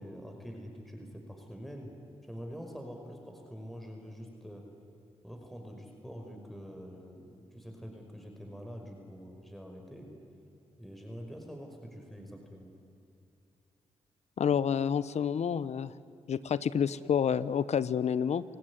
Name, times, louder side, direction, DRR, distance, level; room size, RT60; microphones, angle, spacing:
voice 1, 0.0-1.9 2.3-4.6 5.2-10.1 10.8-12.7, equal, ahead, 2 dB, 5.5 m, -45 dB
voice 2, 14.4-15.9 16.3-18.4, left 7 dB, 65° left, 17 dB, 0.9 m, -29 dB
30.0 x 17.5 x 9.9 m, 2.6 s
supercardioid pair, 50°, 12 cm